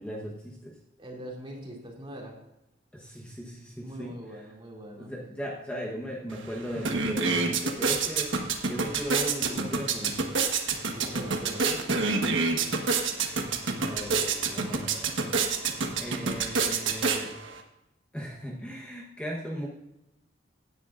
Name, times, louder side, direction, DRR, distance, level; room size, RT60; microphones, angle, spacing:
voice 1, 0.0-0.8 2.9-4.4 5.0-8.4 8.7-10.3 13.8-15.4 16.0-17.4 18.1-19.7, equal, 5° left, -2 dB, 1.1 m, -37 dB
voice 2, 1.0-2.3 3.8-5.1 10.9-11.8 12.1-12.5, right 1 dB, 30° right, -1 dB, 2.6 m, -42 dB
sound 1, 6.3-6.4 6.7-17.6, right 4 dB, 80° right, 1.3 m, -28 dB
16.5 x 9.7 x 2.5 m, 0.92 s
head